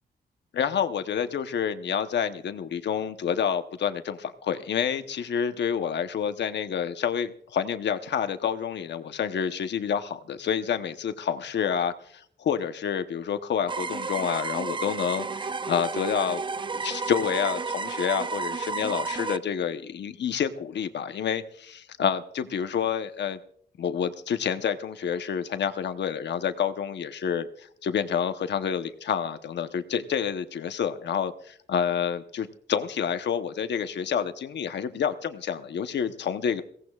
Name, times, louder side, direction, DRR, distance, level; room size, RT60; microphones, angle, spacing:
voice 1, 0.5-16.4 16.7-23.4 23.8-36.6, left 8 dB, 70° left, 9 dB, 1.0 m, -28 dB
sound 1, 13.7-19.4, right 4 dB, 25° right, 0.5 m, -32 dB
22.0 x 17.0 x 2.4 m, 0.62 s
wide cardioid pair, 130°, 19 cm